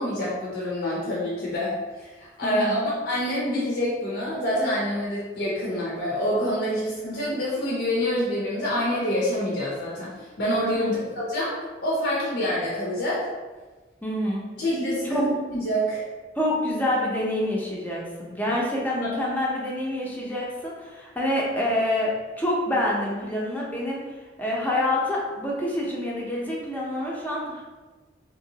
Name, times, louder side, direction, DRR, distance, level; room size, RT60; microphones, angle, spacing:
voice 1, 0.0-10.9 11.2-11.6 11.8-13.3 14.6-16.0 19.0-19.1, equal, 60° left, -6 dB, 0.6 m, -26 dB
voice 2, 2.4-2.9 10.7-10.9 14.0-14.5 15.0-15.2 16.4-24.0 24.4-27.6, left 1 dB, 10° left, -4 dB, 0.5 m, -27 dB
3.0 x 2.9 x 2.7 m, 1.3 s
head